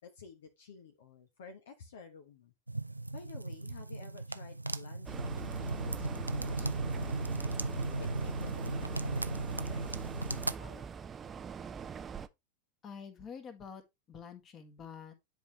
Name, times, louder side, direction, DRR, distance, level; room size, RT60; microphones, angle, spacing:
voice 1, 0.0-2.5 3.1-7.4 8.0-11.0, left 5 dB, 60° left, 1.1 m, -53 dB
sound 1, 2.7-10.5, right 2 dB, 85° right, 0.4 m, -36 dB
sound 2, 5.1-12.3, right 6 dB, 20° right, 0.5 m, -43 dB
voice 2, 12.8-13.8 14.1-15.1, left 6 dB, 30° left, 1.8 m, -47 dB
10.5 x 4.6 x 3.1 m
figure-of-eight pair, 90°, 0 cm